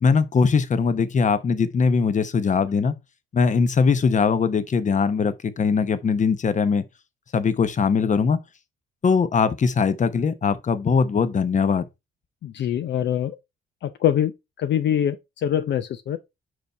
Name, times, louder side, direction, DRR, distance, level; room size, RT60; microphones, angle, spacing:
voice 1, 0.0-2.9 3.3-6.8 7.3-8.4 9.0-11.9, left 5 dB, 40° left, 0.9 m, -21 dB
voice 2, 12.4-13.4 13.8-14.3 14.6-16.2, left 10 dB, 65° left, 0.6 m, -24 dB
5.4 x 5.0 x 4.5 m
cardioid pair, 90°, 20 cm